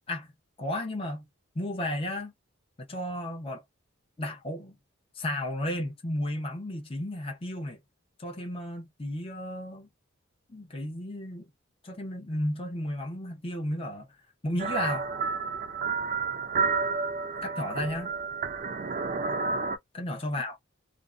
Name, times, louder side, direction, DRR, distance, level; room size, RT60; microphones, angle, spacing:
voice 1, 0.6-1.3 1.5-2.3 2.9-3.6 4.2-4.7 5.1-7.8 8.2-9.9 10.5-11.4 11.8-14.1 14.4-15.1 17.4-18.1 19.9-20.6, left 1 dB, 30° left, 0.7 m, -33 dB
sound 1, 14.6-19.8, right 4 dB, 40° right, 0.4 m, -30 dB
2.6 x 2.1 x 2.4 m
head